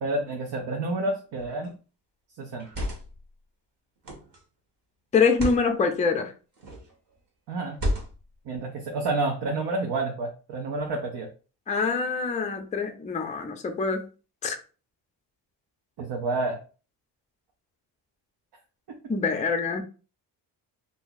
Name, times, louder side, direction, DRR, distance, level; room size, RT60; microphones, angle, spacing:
voice 1, 0.0-1.7 2.4-2.7 7.5-7.8 8.5-11.3 16.0-16.6, right 2 dB, 70° right, 0.8 m, -29 dB
sound 1, 1.4-1.7 2.5-3.2 4.0-4.4 5.2-5.7 6.6-6.9 7.7-8.4, equal, 50° right, 1.3 m, -32 dB
voice 2, 5.1-6.3 11.7-14.1 14.4-14.6 19.1-19.8, left 5 dB, 20° left, 0.4 m, -25 dB
2.6 x 2.3 x 3.8 m
cardioid pair, 100°, 42 cm